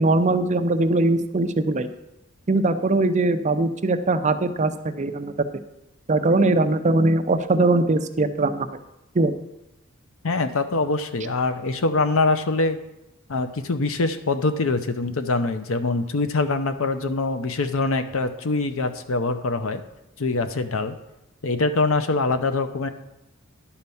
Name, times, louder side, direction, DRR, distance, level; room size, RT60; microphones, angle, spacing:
voice 1, 0.0-1.9 2.5-5.3 6.1-8.7 9.1-9.3, right 2 dB, 35° right, 9 dB, 0.5 m, -21 dB
voice 2, 10.2-12.8 13.3-19.8 20.2-20.9 21.4-22.9, left 3 dB, 70° left, 9 dB, 0.7 m, -24 dB
11.0 x 4.3 x 7.0 m, 0.92 s
head